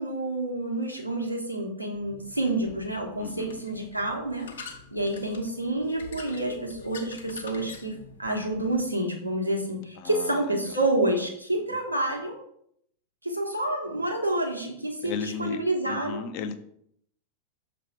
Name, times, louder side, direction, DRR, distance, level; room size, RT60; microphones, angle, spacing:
voice 1, 0.0-4.5 4.9-7.9 8.2-12.4 13.2-16.2, right 1 dB, 90° right, -1 dB, 1.4 m, -28 dB
sound 1, 1.9-8.8, left 4 dB, 65° left, 1.2 m, -46 dB
voice 2, 3.2-3.6 10.0-10.8 15.0-16.6, left 6 dB, 45° left, 9 dB, 0.6 m, -35 dB
6.4 x 3.4 x 4.9 m, 0.69 s
figure-of-eight pair, 90°, 0 cm